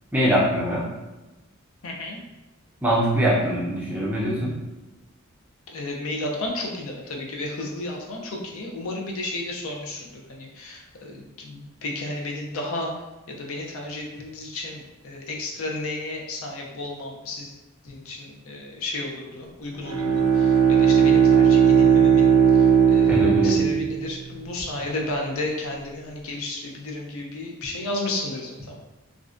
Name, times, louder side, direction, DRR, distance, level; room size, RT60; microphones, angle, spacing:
voice 1, 0.1-0.9 2.8-4.6 23.1-23.7, equal, 5° right, -6 dB, 0.4 m, -23 dB
voice 2, 1.8-2.2 5.7-12.9 13.3-17.5 17.8-28.8, left 2 dB, 70° left, 0 dB, 0.5 m, -33 dB
Bowed string instrument, 19.7-24.5, right 7 dB, 90° right, 0.4 m, -17 dB
2.4 x 2.1 x 2.4 m, 1.1 s
head